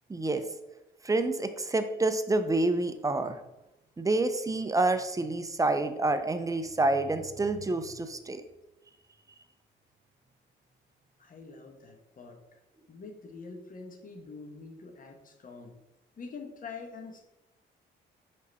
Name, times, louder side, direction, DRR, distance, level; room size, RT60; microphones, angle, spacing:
voice 1, 0.1-0.4 1.0-3.4 4.0-8.4, right 2 dB, 15° right, 9 dB, 0.6 m, -28 dB
voice 2, 11.2-12.6 12.9-15.8 16.2-17.2, left 4 dB, 45° left, 4 dB, 1.2 m, -45 dB
5.3 x 3.9 x 5.4 m, 0.93 s
cardioid pair, 90°, 20 cm